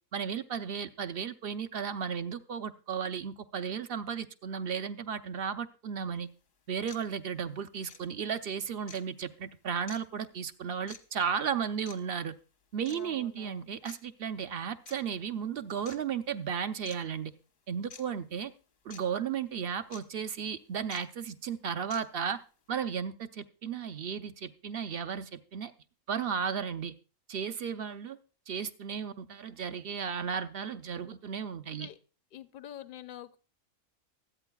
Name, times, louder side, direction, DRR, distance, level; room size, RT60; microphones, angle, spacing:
voice 1, 0.1-6.3 6.7-12.3 12.7-17.3 17.7-18.5 18.8-22.4 22.7-25.7 26.1-26.9 27.3-28.2 28.5-31.9, right 7 dB, 55° right, 10 dB, 0.8 m, -34 dB
sound 1, 6.2-6.3 6.9-7.0 7.9-8.0 8.9-9.0 9.9-10.0 10.9-11.0 11.9-12.0 12.9-13.0 13.9-14.0 14.9-15.0 15.9-16.0 16.9-17.0 17.9-18.0 18.9-19.0 19.9-20.0 20.9-21.0 21.9-22.0, left 5 dB, 85° left, 1.7 m, -48 dB
voice 2, 12.9-13.7 31.7-32.0 32.3-33.4, left 11 dB, 55° left, 12 dB, 0.6 m, -46 dB
24.0 x 8.8 x 2.3 m, 0.37 s
omnidirectional pair, 1.4 m